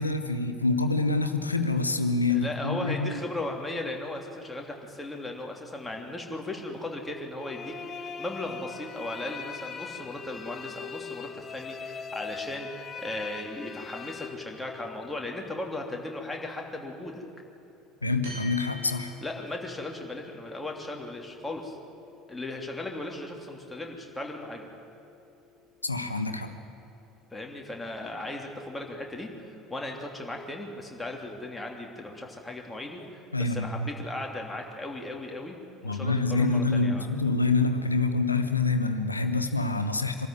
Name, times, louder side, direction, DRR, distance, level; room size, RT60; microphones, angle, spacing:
voice 1, 0.0-3.2 18.0-19.1 25.8-26.5 33.3-33.9 35.8-40.3, left 3 dB, 85° left, 8 dB, 1.0 m, -26 dB
voice 2, 2.3-17.2 19.2-21.8 22.3-24.7 27.3-37.1, left 2 dB, 10° left, 1 dB, 3.1 m, -37 dB
sound 1, 7.4-15.1, left 6 dB, 35° left, 1.2 m, -40 dB
sound 2, 18.2-26.9, left 2 dB, 65° right, 4.9 m, -50 dB
24.5 x 13.5 x 9.4 m, 2.7 s
figure-of-eight pair, 65°, 0 cm